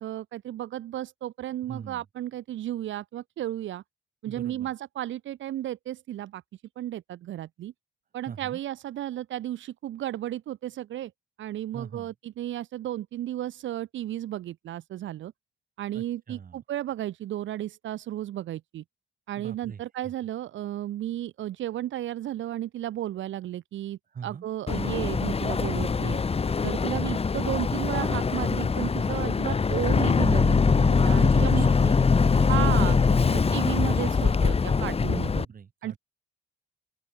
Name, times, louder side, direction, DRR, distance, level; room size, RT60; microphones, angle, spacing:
voice 1, 0.0-3.8 4.2-7.7 8.1-11.1 11.4-15.3 15.8-18.8 19.3-26.2 26.6-31.7 32.5-33.0 33.3-35.5 35.8-36.0, right 13 dB, 75° right, 1.4 m, -33 dB
voice 2, 1.7-2.0 4.2-4.7 8.3-8.6 11.7-12.1 15.9-16.6 19.4-19.8 24.1-24.4 31.2-33.8 34.1-34.4 35.3-36.0, right 6 dB, 45° right, 4.3 m, -41 dB
Boat Water vehicle, 24.7-35.4, left 5 dB, 30° left, 1.6 m, -23 dB
open air
cardioid pair, 90°, 20 cm